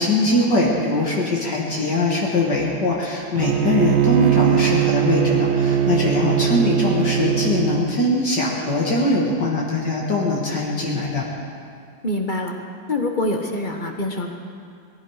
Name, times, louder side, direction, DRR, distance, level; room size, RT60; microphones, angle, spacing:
voice 1, 0.0-11.3, left 2 dB, 60° left, -3 dB, 2.3 m, -21 dB
Bowed string instrument, 3.4-7.9, right 10 dB, 90° right, 1.5 m, -20 dB
voice 2, 12.0-12.5 12.9-14.3, left 2 dB, 30° left, 2 dB, 1.0 m, -25 dB
19.5 x 15.0 x 4.9 m, 2.3 s
omnidirectional pair, 2.1 m